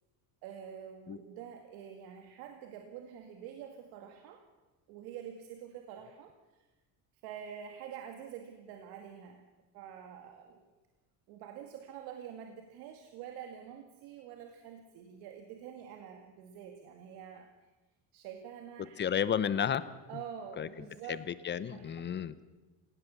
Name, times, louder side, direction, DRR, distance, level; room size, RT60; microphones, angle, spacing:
voice 1, 0.4-4.4 4.9-6.7 7.2-10.6 11.3-17.7 18.1-19.0 20.1-21.3 21.7-22.1, right 8 dB, 90° right, 5 dB, 2.2 m, -47 dB
voice 2, 19.0-19.8 20.1-20.2 20.6-20.7 21.1-22.3, left 8 dB, 30° left, 15 dB, 0.9 m, -32 dB
28.0 x 17.5 x 7.1 m, 1.2 s
cardioid pair, 155°, 36 cm